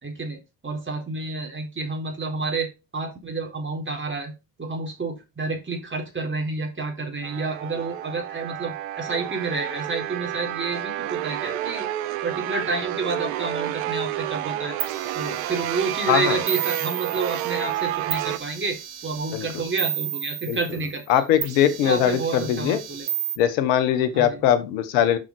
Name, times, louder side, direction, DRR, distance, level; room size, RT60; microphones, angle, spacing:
voice 1, 0.0-4.3 4.6-11.9 12.2-14.8 15.1-21.2 21.8-23.1 24.1-24.5, right 3 dB, 30° right, 4.1 m, -29 dB
sound 1, 7.2-18.4, right 13 dB, 85° right, 0.7 m, -30 dB
sound 2, 14.8-17.7 18.1-21.0 21.4-23.4, right 10 dB, 70° right, 1.9 m, -33 dB
voice 2, 21.1-22.8 23.4-25.2, left 10 dB, 85° left, 1.3 m, -21 dB
7.4 x 5.8 x 4.6 m
hypercardioid pair, 50°, 40 cm